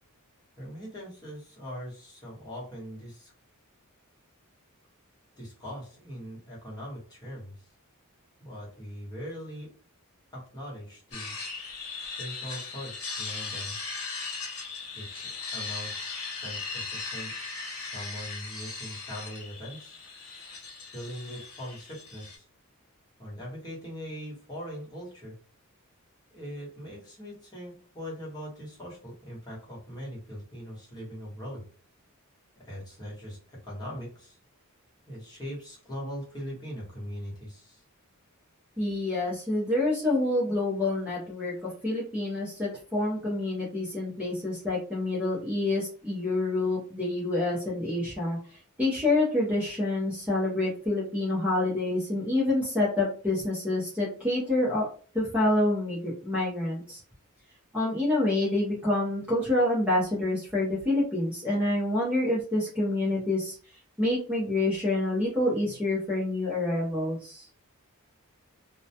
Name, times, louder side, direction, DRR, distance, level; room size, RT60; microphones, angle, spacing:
voice 1, 0.6-3.3 5.4-7.5 8.4-9.7 10.3-11.3 12.2-13.8 14.9-17.3 17.7-20.0 20.9-22.4 23.2-25.3 26.3-31.6 32.6-34.4 35.1-37.8, equal, 20° left, -5 dB, 1.0 m, -41 dB
sound 1, 11.1-22.4, left 4 dB, 75° left, 0.8 m, -38 dB
voice 2, 38.8-54.9 55.1-57.0 57.7-63.6 64.0-67.5, left 2 dB, 5° right, -7 dB, 0.6 m, -27 dB
2.2 x 2.1 x 2.7 m, 0.40 s
head